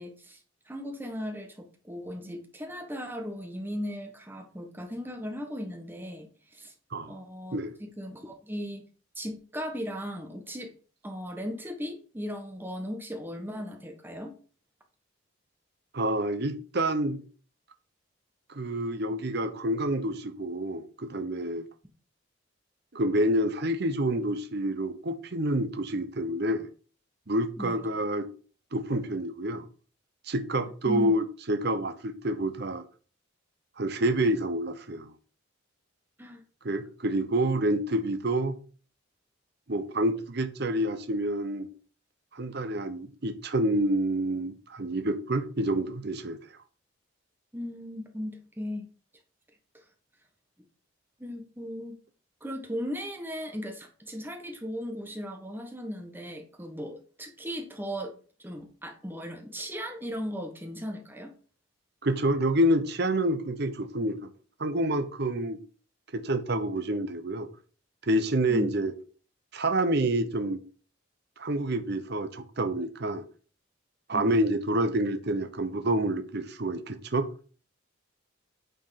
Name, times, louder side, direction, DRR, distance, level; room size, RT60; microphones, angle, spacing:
voice 1, 0.0-6.7 7.1-8.8 9.1-10.7 11.0-14.3 27.6-27.8 30.8-31.1 36.2-36.4 47.5-48.9 49.7-49.8 51.2-52.0 52.4-58.1 58.4-61.3 68.5-68.7 74.1-74.3, equal, 10° right, 1.2 m, -37 dB
voice 2, 15.9-17.2 18.5-21.7 22.9-26.7 27.3-28.3 28.7-29.6 30.3-32.8 33.8-35.1 36.6-38.6 39.7-41.7 42.3-46.4 62.0-64.3 64.6-65.6 66.1-67.5 68.0-68.9 69.5-70.6 71.4-73.2 74.1-77.3, right 1 dB, 50° right, 0.9 m, -28 dB
9.2 x 4.6 x 5.7 m
head